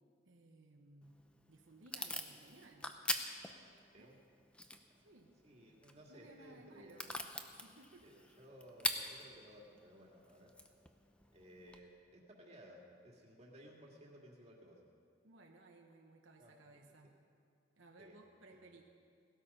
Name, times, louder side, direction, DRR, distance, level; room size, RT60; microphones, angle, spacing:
voice 1, 0.2-1.1 1.5-2.9 4.0-4.1 5.0-5.3 6.1-7.1 7.6-8.1 15.2-17.1 17.8-18.8, right 2 dB, 75° right, 1 dB, 1.1 m, -60 dB
Packing tape duct tape / Tearing, 1.0-11.8, left 1 dB, 5° left, 0.6 m, -45 dB
voice 2, 5.4-7.2 8.0-10.5 11.3-14.8 16.4-16.5 18.0-18.2 18.5-18.8, equal, 30° right, -2 dB, 2.2 m, -58 dB
17.5 x 12.5 x 5.5 m, 2.4 s
head